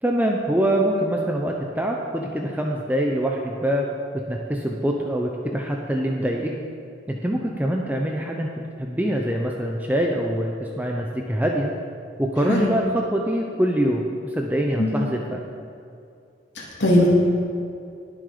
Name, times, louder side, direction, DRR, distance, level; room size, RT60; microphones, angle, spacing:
voice 1, 0.0-3.8 4.1-6.5 7.1-11.7 12.2-15.4, right 1 dB, 10° right, 0 dB, 0.8 m, -24 dB
voice 2, 16.6-17.1, left 1 dB, 75° left, -5 dB, 2.8 m, -20 dB
20.0 x 7.7 x 5.1 m, 2.5 s
head